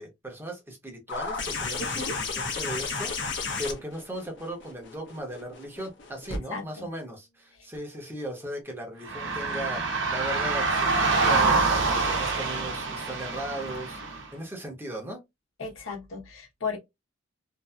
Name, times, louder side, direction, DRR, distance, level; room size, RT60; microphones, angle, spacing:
voice 1, 0.0-14.0 14.3-15.2, equal, 10° right, 0.8 m, -37 dB
sound 1, 1.1-6.4 7.7-7.8, left 4 dB, 60° left, 0.8 m, -33 dB
voice 2, 6.5-6.9 15.6-16.8, left 4 dB, 90° left, 1.0 m, -35 dB
sound 2, 9.0-14.2, right 3 dB, 65° right, 0.8 m, -26 dB
2.7 x 2.5 x 2.2 m
head